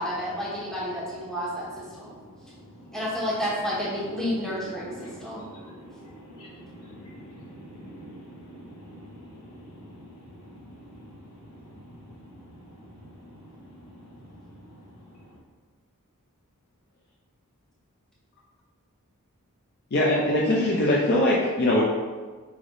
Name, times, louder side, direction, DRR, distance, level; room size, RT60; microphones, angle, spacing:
voice 1, 0.0-2.2 2.9-5.5, equal, ahead, -8 dB, 0.9 m, -30 dB
voice 2, 2.2-3.0 4.6-14.9, equal, 80° left, -7 dB, 1.4 m, -46 dB
voice 3, 19.9-21.8, left 1 dB, 50° left, -4 dB, 0.5 m, -21 dB
4.9 x 3.2 x 2.6 m, 1.4 s
head